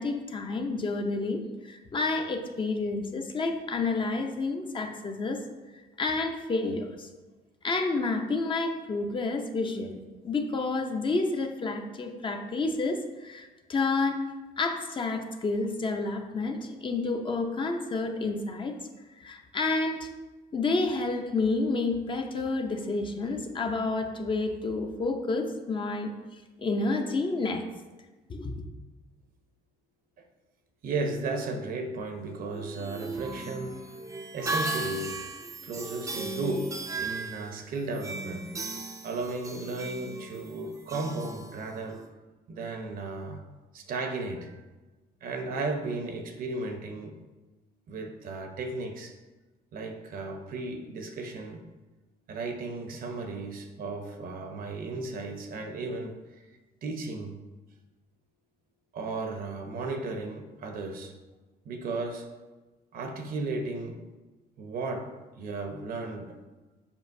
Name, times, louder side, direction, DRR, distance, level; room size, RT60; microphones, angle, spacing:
voice 1, 0.0-5.4 6.0-7.1 7.6-14.2 14.6-18.8 19.2-20.1 20.5-26.1 26.6-27.6 28.3-28.6, left 3 dB, 30° left, 4 dB, 0.6 m, -29 dB
voice 2, 30.8-33.8 34.3-35.2 35.6-38.5 39.0-42.1 42.5-43.4 43.7-44.7 45.2-47.2 47.9-49.2 49.7-51.7 52.3-56.2 56.5-57.4 58.9-61.1 61.6-62.3 62.9-64.0 64.6-66.4, right 3 dB, 55° right, 5 dB, 0.8 m, -35 dB
sound 1, 32.5-42.1, right 2 dB, 20° right, 0.5 m, -37 dB
7.1 x 5.2 x 2.6 m, 1.2 s
cardioid pair, 110°, 17 cm